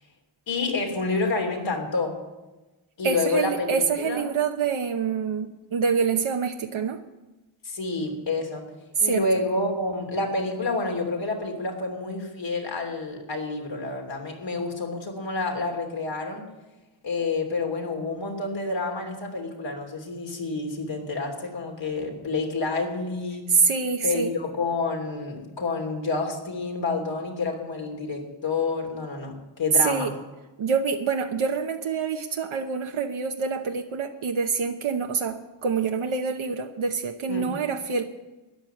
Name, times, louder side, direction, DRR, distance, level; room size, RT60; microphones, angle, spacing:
voice 1, 0.5-2.2 3.0-4.3 7.6-8.7 9.0-16.5 17.0-23.5 24.0-30.1 37.3-37.6, left 3 dB, 65° left, 3 dB, 3.2 m, -29 dB
voice 2, 3.0-7.0 9.0-9.2 23.5-24.3 29.8-30.1 30.6-38.0, right 5 dB, 80° right, 3 dB, 1.0 m, -26 dB
13.0 x 10.5 x 8.5 m, 1.1 s
wide cardioid pair, 130°, 49 cm